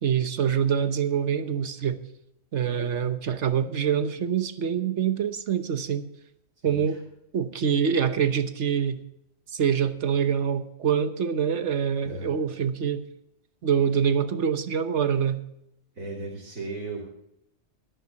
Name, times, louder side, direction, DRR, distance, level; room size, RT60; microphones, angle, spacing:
voice 1, 0.0-2.0 2.5-6.1 6.6-7.0 7.3-9.0 9.5-13.0 13.6-15.4, right 8 dB, 60° right, 10 dB, 1.2 m, -25 dB
voice 2, 15.9-17.0, right 2 dB, 85° right, -5 dB, 3.4 m, -35 dB
22.0 x 11.0 x 2.9 m, 0.80 s
omnidirectional pair, 1.4 m